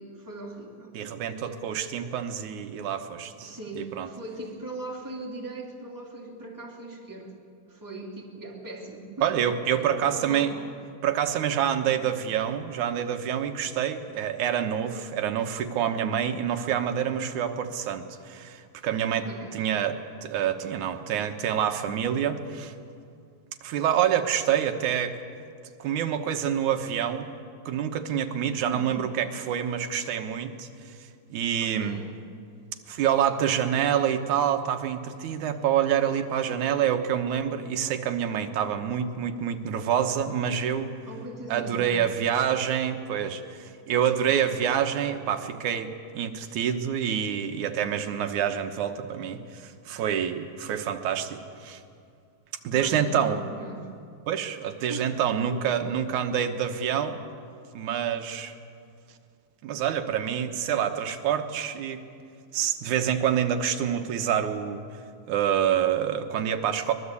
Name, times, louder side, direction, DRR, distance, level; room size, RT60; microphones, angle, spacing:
voice 1, 0.0-0.9 3.4-7.3 7.7-9.3 9.8-10.6 19.1-19.5 28.6-29.0 31.6-32.1 41.1-41.9 52.7-53.9 54.9-55.2 55.5-55.6, right 2 dB, 5° right, -1 dB, 2.9 m, -40 dB
voice 2, 0.9-4.1 9.2-10.5 11.0-19.3 19.5-22.7 23.6-25.2 25.8-27.3 27.7-31.0 31.3-32.0 32.9-41.0 41.5-51.8 52.6-53.4 54.3-57.2 57.7-58.6 59.6-62.1 62.5-64.8 65.3-66.9, right 9 dB, 90° right, 6 dB, 2.7 m, -27 dB
23.5 x 21.0 x 8.4 m, 2.5 s
omnidirectional pair, 3.3 m